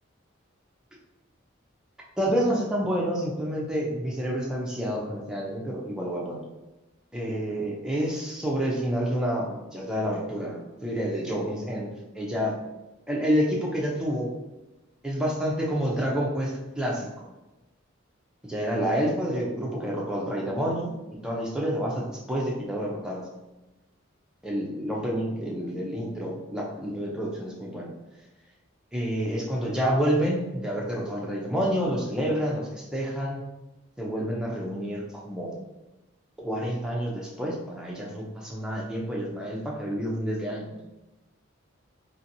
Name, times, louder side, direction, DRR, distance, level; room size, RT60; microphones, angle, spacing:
voice 1, 2.2-6.4 7.1-11.9 12.1-12.6 13.1-14.3 15.0-17.3 18.4-20.9 21.2-23.3 24.4-27.9 28.9-33.4 34.0-35.6 36.4-40.7, equal, 5° right, -3 dB, 0.5 m, -28 dB
2.7 x 2.5 x 2.6 m, 1.0 s
head